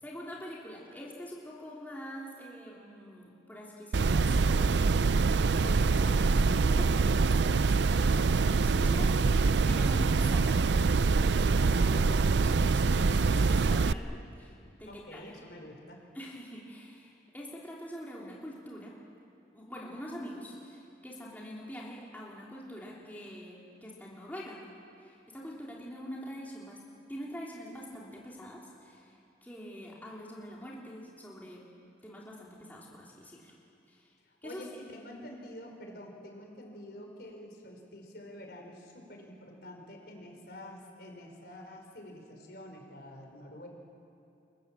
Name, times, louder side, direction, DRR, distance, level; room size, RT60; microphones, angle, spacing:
voice 1, 0.0-4.9 5.6-10.6 11.2-15.2 16.1-18.9 19.5-24.6 25.0-26.8 27.1-31.7 32.0-33.5 33.9-34.1 34.4-34.6, equal, 10° left, -4 dB, 3.3 m, -44 dB
sound 1, 3.9-13.9, right 4 dB, 70° right, 0.5 m, -25 dB
voice 2, 14.9-16.0 34.3-43.7, left 1 dB, 60° left, 2 dB, 5.0 m, -47 dB
29.5 x 22.5 x 7.6 m, 2.8 s
head